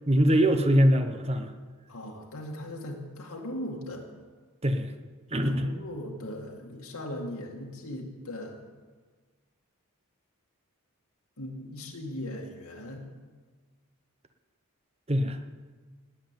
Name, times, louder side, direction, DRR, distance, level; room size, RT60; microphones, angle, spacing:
voice 1, 0.1-1.5 4.6-4.9 5.3-5.7 15.1-15.4, equal, 30° right, 7 dB, 1.0 m, -23 dB
voice 2, 1.9-4.1 5.4-8.6 11.4-13.1, left 1 dB, 85° left, 0 dB, 2.2 m, -38 dB
18.5 x 7.7 x 9.1 m, 1.4 s
head